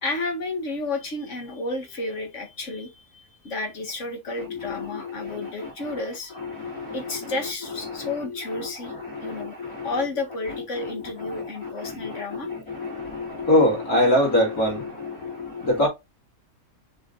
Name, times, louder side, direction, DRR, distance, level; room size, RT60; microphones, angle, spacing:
voice 1, 0.0-6.4 6.9-8.9 9.2-9.6 9.8-12.5, left 2 dB, 55° left, 2.0 m, -32 dB
voice 2, 4.3-6.0 6.4-7.4 7.8-10.0 10.5-15.9, left 1 dB, 90° left, 3.6 m, -26 dB
6.9 x 3.5 x 3.9 m
omnidirectional pair, 1.5 m